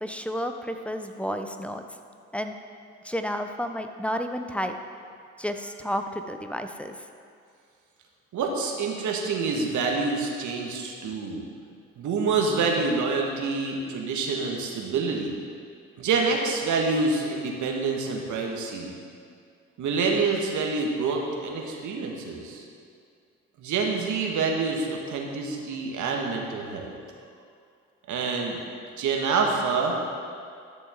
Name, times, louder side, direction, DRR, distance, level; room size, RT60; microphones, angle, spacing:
voice 1, 0.0-1.8 2.3-2.6 3.0-4.7 5.4-7.0, equal, 5° left, 6 dB, 0.7 m, -31 dB
voice 2, 8.3-11.4 12.0-15.3 16.0-18.9 19.8-22.6 23.6-26.9 28.1-28.6 29.0-30.0, right 4 dB, 60° right, 0 dB, 1.6 m, -27 dB
12.0 x 6.8 x 3.7 m, 2.3 s
hypercardioid pair, 55°, 33 cm